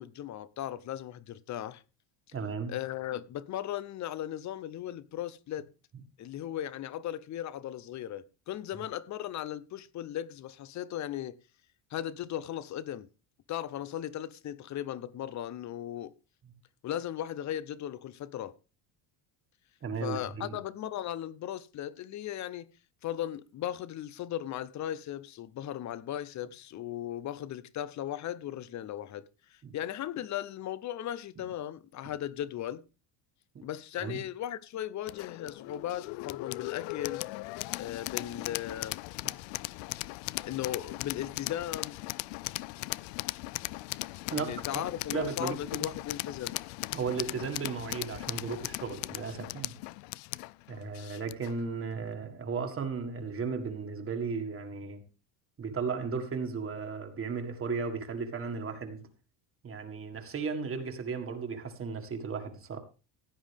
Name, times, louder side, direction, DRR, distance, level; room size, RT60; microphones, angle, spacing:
voice 1, 0.0-1.8 2.7-5.7 6.2-11.4 11.9-13.1 13.5-16.1 16.8-18.5 20.0-22.7 23.0-29.2 29.5-32.8 33.6-37.2 37.8-39.0 40.4-42.0 44.3-46.6, left 11 dB, 40° left, 0.8 m, -37 dB
voice 2, 2.3-2.7 19.8-20.6 29.6-29.7 33.6-33.7 34.0-34.2 39.2-39.4 44.3-44.8 45.1-45.9 46.9-49.7 50.7-55.0 55.6-59.1 59.6-62.8, right 5 dB, 30° right, 1.8 m, -35 dB
sound 1, 35.1-51.6, left 23 dB, 80° left, 0.5 m, -38 dB
16.0 x 9.6 x 3.5 m
cardioid pair, 135°, 43 cm